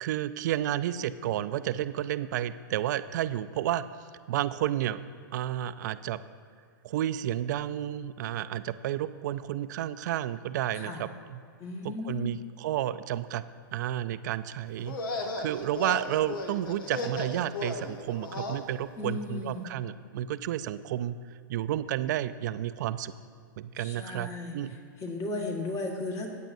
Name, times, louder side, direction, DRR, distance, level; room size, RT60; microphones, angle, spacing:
voice 1, 0.0-3.8 4.3-5.0 5.3-6.2 6.8-11.4 11.8-13.4 13.7-21.2 21.5-23.1 23.6-24.8, right 12 dB, 60° right, 12 dB, 0.4 m, -31 dB
voice 2, 11.6-12.3 19.0-19.6 23.8-26.3, left 2 dB, 30° left, 1 dB, 1.6 m, -35 dB
sound 1, 14.8-18.6, left 2 dB, 75° left, 1.3 m, -35 dB
14.5 x 9.1 x 2.6 m, 2.1 s
hypercardioid pair, 130°, 11 cm